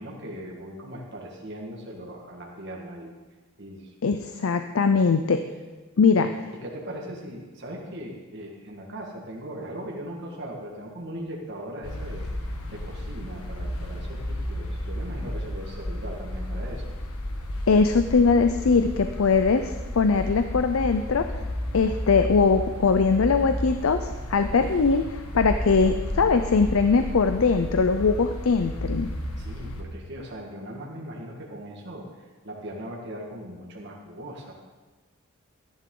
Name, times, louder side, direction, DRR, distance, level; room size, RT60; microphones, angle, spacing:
voice 1, 0.0-3.2 3.6-3.9 4.8-5.0 6.1-6.4 6.6-12.3 12.7-16.8 29.4-34.5, equal, 50° right, -2 dB, 1.8 m, -39 dB
voice 2, 4.0-5.4 6.0-6.3 17.7-21.4 21.7-29.1, left 4 dB, 70° left, 8 dB, 0.5 m, -21 dB
sound 1, 11.8-29.8, equal, 90° left, 1.5 m, -33 dB
14.0 x 10.5 x 3.8 m, 1.3 s
head